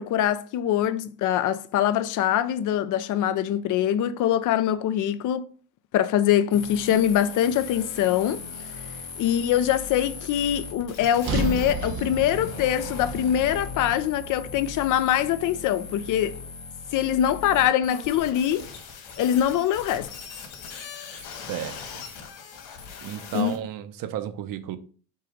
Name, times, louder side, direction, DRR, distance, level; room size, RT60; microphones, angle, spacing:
voice 1, 0.0-5.4 5.9-8.4 9.2-16.3 16.9-18.7 19.2-20.1 23.3-23.5, left 10 dB, 40° left, 0.6 m, -23 dB
sound 1, 6.5-23.6, left 5 dB, 60° left, 2.5 m, -39 dB
sound 2, 11.2-15.5, right 4 dB, 75° right, 2.6 m, -33 dB
voice 2, 21.5-22.0 23.0-24.8, right 11 dB, 45° right, 0.8 m, -33 dB
6.7 x 2.9 x 4.9 m
supercardioid pair, 100°, 46 cm